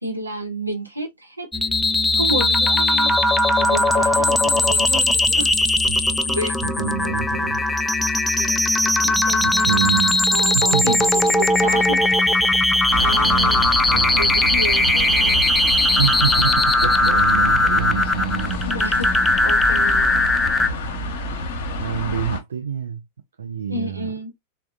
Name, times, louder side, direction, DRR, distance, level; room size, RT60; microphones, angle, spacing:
voice 1, 0.0-1.5 2.1-3.2 3.6-5.5 6.3-6.6 7.8-7.9 8.3-8.6 8.8-9.9 10.3-12.0 13.0-13.6 13.9-15.4 18.6-19.1 19.4-20.2 23.7-24.3, equal, 85° right, 0.8 m, -30 dB
sound 1, 1.5-20.7, left 2 dB, 5° left, 0.3 m, -19 dB
voice 2, 6.6-7.6 9.4-10.2 10.5-11.0 12.9-14.3 16.0-18.6 21.8-23.0 23.4-24.1, right 8 dB, 70° right, 0.4 m, -27 dB
sound 2, 12.9-22.4, left 2 dB, 55° left, 0.7 m, -28 dB
3.6 x 2.2 x 2.4 m
figure-of-eight pair, 90°, 0 cm